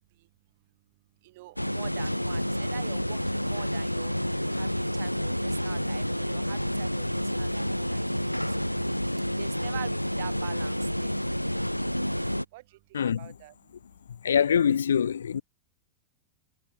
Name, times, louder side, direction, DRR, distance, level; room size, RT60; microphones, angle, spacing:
voice 1, 1.2-4.1 4.5-5.3 5.6-7.1 7.4-8.1 8.6-8.7 9.4-10.8 11.0-11.1 12.5-12.6 13.2-13.5, right 19 dB, 50° right, 5.2 m, -44 dB
sound 1, 1.6-12.4, equal, 90° left, 0.5 m, -29 dB
voice 2, 12.9-13.3 14.2-15.4, left 8 dB, 70° left, 1.9 m, -24 dB
figure-of-eight pair, 90°, 0 cm